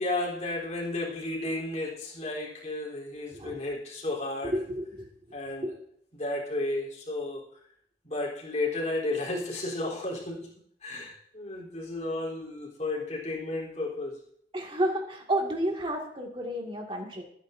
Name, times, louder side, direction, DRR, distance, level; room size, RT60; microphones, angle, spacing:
voice 1, 0.0-4.6 5.3-5.7 6.1-7.4 8.0-10.5 10.8-14.2, left 2 dB, 40° left, -3 dB, 3.7 m, -33 dB
voice 2, 4.5-5.1 5.6-5.7 14.5-17.2, right 1 dB, 30° right, 0 dB, 2.1 m, -31 dB
21.5 x 9.7 x 2.7 m, 0.66 s
head